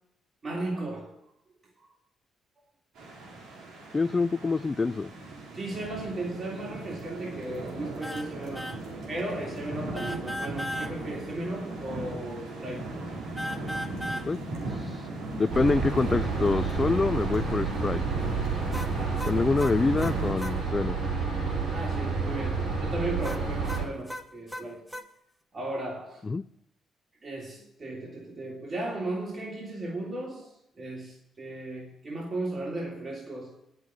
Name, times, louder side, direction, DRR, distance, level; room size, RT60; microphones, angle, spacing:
voice 1, 0.4-1.2 5.5-8.8 9.1-12.9 18.8-19.3 21.7-24.9 25.5-26.2 27.2-33.6, right 2 dB, 40° right, -3 dB, 3.2 m, -36 dB
sound 1, 3.0-20.3, right 2 dB, 85° right, 3.4 m, -38 dB
voice 2, 3.9-5.1 14.3-18.0 19.3-20.9 26.2-26.4, left 3 dB, 25° left, 12 dB, 0.4 m, -26 dB
sound 2, 8.0-8.3 8.6-8.8 10.0-10.9 13.4-14.3 18.7-20.6 23.2-25.1, equal, ahead, 1.2 m, -36 dB
sound 3, 15.5-23.8, right 4 dB, 65° right, 5.8 m, -30 dB
8.9 x 8.0 x 8.2 m, 0.77 s
cardioid pair, 90°, 0 cm